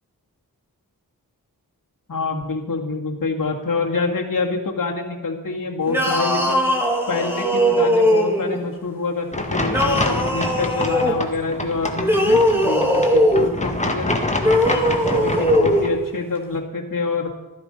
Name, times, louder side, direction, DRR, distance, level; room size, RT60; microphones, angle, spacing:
voice 1, 2.1-6.6 7.1-14.2 15.1-17.3, left 3 dB, 65° left, -1 dB, 2.1 m, -26 dB
sound 1, 5.9-8.6 9.7-11.2 12.0-13.5 14.4-15.8, equal, 5° right, 2.8 m, -19 dB
sound 2, 9.3-15.9, left 2 dB, 20° left, 1.9 m, -26 dB
13.5 x 11.5 x 5.4 m, 1.1 s
cardioid pair, 50°, 35 cm